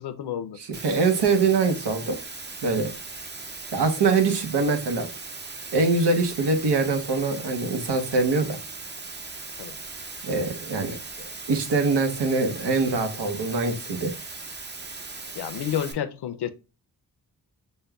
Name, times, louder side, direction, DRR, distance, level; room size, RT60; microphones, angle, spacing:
voice 1, 0.0-0.6 9.6-9.7 15.3-16.5, left 9 dB, 75° left, 0.5 m, -30 dB
voice 2, 0.6-2.2 2.6-2.9 3.7-5.1 5.7-8.6 10.2-14.1, right 4 dB, 90° right, 0.9 m, -24 dB
Water, 0.7-15.9, right 3 dB, 25° right, 0.5 m, -39 dB
6.4 x 2.2 x 2.2 m
wide cardioid pair, 90°, 40 cm